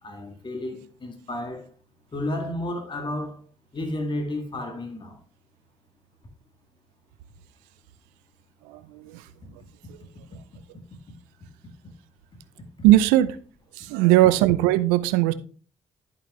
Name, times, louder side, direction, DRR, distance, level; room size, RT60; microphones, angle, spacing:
voice 1, 0.0-1.7 2.1-3.4 3.7-5.2, left 1 dB, 35° left, 1.8 m, -32 dB
voice 2, 12.8-13.3 13.8-15.3, right 15 dB, 75° right, 0.5 m, -18 dB
11.0 x 5.5 x 3.1 m
hypercardioid pair, 40°, 14 cm